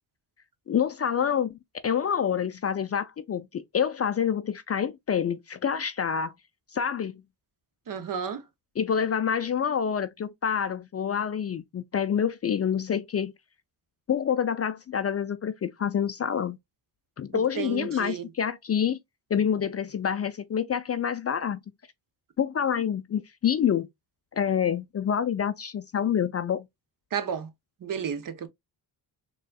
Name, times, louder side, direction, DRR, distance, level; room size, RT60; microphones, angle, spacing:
voice 1, 0.7-1.6 1.8-6.3 6.7-7.2 8.8-13.3 14.1-16.6 17.2-19.0 19.3-21.6 22.4-23.9 24.4-26.7, left 8 dB, 35° left, 0.4 m, -27 dB
voice 2, 7.9-8.4 17.3-18.3 27.1-27.5 27.8-28.5, right 7 dB, 45° right, 0.8 m, -32 dB
4.0 x 2.4 x 2.2 m
supercardioid pair, 55°, 46 cm